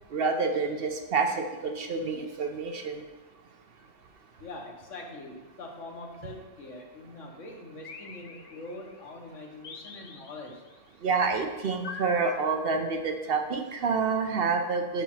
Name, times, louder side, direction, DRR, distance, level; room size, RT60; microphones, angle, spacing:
voice 1, 0.1-3.0 11.0-15.0, right 4 dB, 55° right, 5 dB, 0.8 m, -28 dB
voice 2, 4.4-10.6, left 2 dB, 85° left, 1 dB, 1.5 m, -43 dB
sound 1, 7.8-9.0 9.6-10.8 11.8-13.3, left 5 dB, 55° left, 0.7 m, -45 dB
5.9 x 5.6 x 5.7 m, 1.1 s
omnidirectional pair, 1.2 m